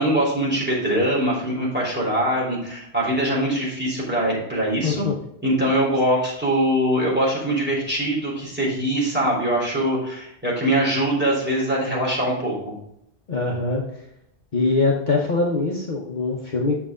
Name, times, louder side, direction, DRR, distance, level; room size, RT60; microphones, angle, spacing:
voice 1, 0.0-5.1 5.4-12.8, right 1 dB, 10° right, -6 dB, 3.8 m, -22 dB
voice 2, 4.8-5.2 13.3-14.0 14.5-16.7, left 3 dB, 45° left, -1 dB, 1.1 m, -23 dB
8.6 x 6.8 x 3.7 m, 0.76 s
omnidirectional pair, 1.1 m